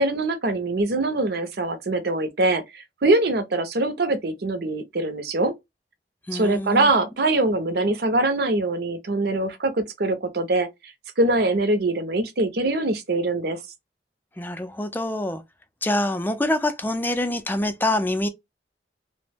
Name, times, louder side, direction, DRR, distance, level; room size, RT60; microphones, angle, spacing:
voice 1, 0.0-5.5 6.3-10.7 11.2-13.6, right 2 dB, 60° right, 0.6 m, -23 dB
voice 2, 6.3-6.9 14.4-15.4 15.8-18.3, left 1 dB, 10° left, 0.4 m, -25 dB
2.9 x 2.1 x 3.3 m
head